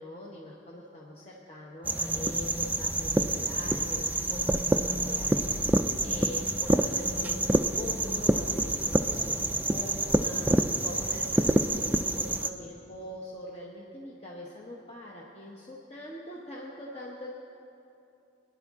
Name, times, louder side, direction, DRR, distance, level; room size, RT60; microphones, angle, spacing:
voice 1, 0.0-4.0 4.3-17.3, left 1 dB, 30° left, -3 dB, 1.0 m, -43 dB
sound 1, 1.8-12.5, right 1 dB, 10° right, 0.3 m, -27 dB
22.0 x 10.5 x 3.6 m, 2.8 s
head